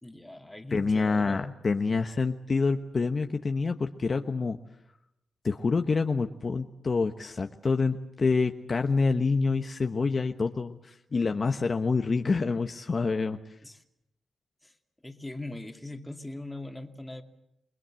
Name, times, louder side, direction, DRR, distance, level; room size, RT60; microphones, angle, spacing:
voice 1, 0.0-1.5 13.6-13.8 14.6-14.8 15.0-17.2, left 2 dB, 15° left, 5 dB, 2.5 m, -41 dB
voice 2, 0.7-4.6 5.4-13.4, left 4 dB, 50° left, 6 dB, 1.1 m, -27 dB
28.0 x 21.0 x 7.7 m, 0.83 s
cardioid pair, 65°, 0 cm